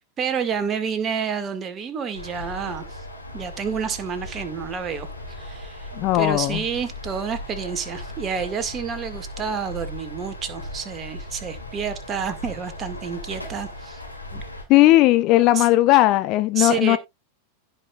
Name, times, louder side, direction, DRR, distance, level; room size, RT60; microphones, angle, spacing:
voice 1, 0.2-3.0 3.3-5.9 6.1-14.0 15.6-15.7 16.6-17.0, right 6 dB, 25° right, 1.8 m, -29 dB
sound 1, 2.1-14.6, left 1 dB, 90° left, 2.5 m, -37 dB
voice 2, 5.9-6.6 14.3-14.4 14.7-17.0, left 17 dB, 40° left, 0.6 m, -17 dB
16.0 x 5.4 x 2.3 m
figure-of-eight pair, 90°, 0 cm